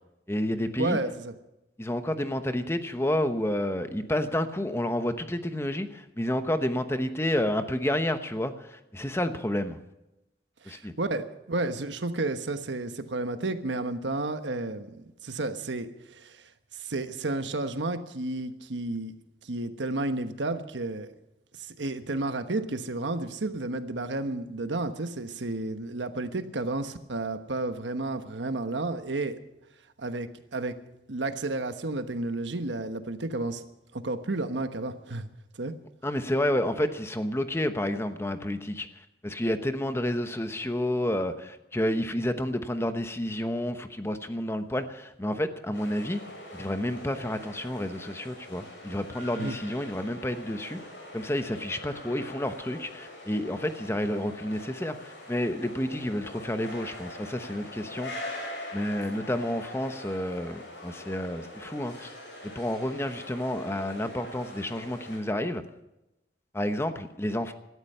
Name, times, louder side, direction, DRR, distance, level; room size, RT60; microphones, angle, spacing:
voice 1, 0.3-1.0 1.8-9.8 10.6-10.9 36.0-46.2 46.5-50.8 51.1-58.2 58.7-62.1 62.5-65.6 66.5-67.5, left 1 dB, 15° left, 9 dB, 1.0 m, -30 dB
voice 2, 0.8-1.3 10.6-16.4 16.7-19.1 19.4-21.1 21.6-29.4 30.0-30.8 31.1-33.6 33.9-35.3 35.6-35.7 49.4-49.5, right 2 dB, 90° right, 9 dB, 1.2 m, -32 dB
sound 1, 45.7-65.2, left 1 dB, 85° left, 6.9 m, -43 dB
18.0 x 13.0 x 5.6 m, 0.94 s
head